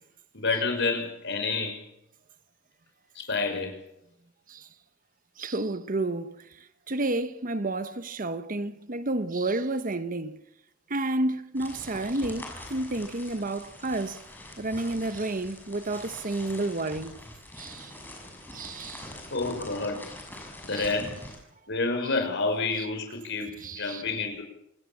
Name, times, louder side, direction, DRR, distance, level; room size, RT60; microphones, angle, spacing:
voice 1, 0.3-1.8 3.1-3.8 19.3-20.0 20.6-21.2 21.7-24.4, left 3 dB, 60° left, 5.9 m, -29 dB
voice 2, 5.4-10.4 10.9-14.2 14.6-17.2 17.6-18.0 18.5-19.1 20.7-20.9 23.6-24.0, right 2 dB, 45° right, 1.1 m, -31 dB
sound 1, 11.6-21.4, left 1 dB, 10° left, 6.7 m, -44 dB
27.0 x 19.0 x 7.3 m
head